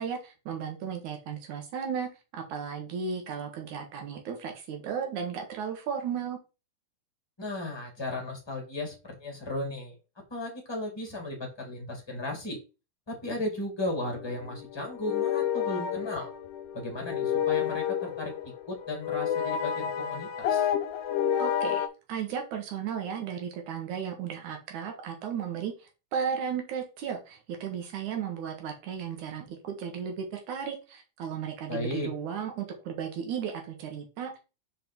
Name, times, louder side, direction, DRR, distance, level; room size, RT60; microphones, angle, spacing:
voice 1, 0.0-6.4 21.4-34.4, right 7 dB, 70° right, 4 dB, 2.7 m, -35 dB
voice 2, 7.4-10.0 10.3-12.6 13.1-16.3 16.7-18.3 18.7-20.7 31.7-32.1, left 1 dB, 10° left, 1 dB, 1.4 m, -35 dB
sound 1, 13.9-21.9, left 9 dB, 80° left, 1.8 m, -30 dB
5.4 x 5.1 x 4.4 m, 0.30 s
omnidirectional pair, 3.6 m